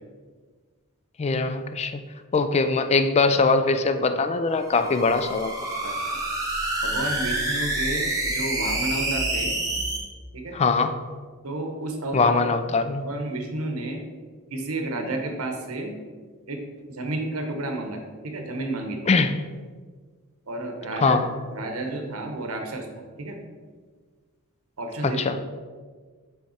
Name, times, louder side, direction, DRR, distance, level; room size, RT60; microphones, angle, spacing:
voice 1, 1.2-2.0 2.3-5.5 10.5-11.0 12.1-13.1 19.1-19.4 21.0-21.3 25.0-25.4, left 4 dB, 30° left, 9 dB, 0.4 m, -22 dB
sound 1, 4.6-10.0, right 1 dB, 15° right, 1.1 m, -27 dB
voice 2, 5.8-6.2 6.8-9.5 10.3-10.6 11.4-12.3 13.0-14.0 14.5-16.0 16.5-16.6 16.9-19.0 20.5-21.2 21.5-22.9 23.2-23.4 24.8-25.4, right 2 dB, 70° right, 4 dB, 1.0 m, -31 dB
7.5 x 3.5 x 4.2 m, 1.5 s
head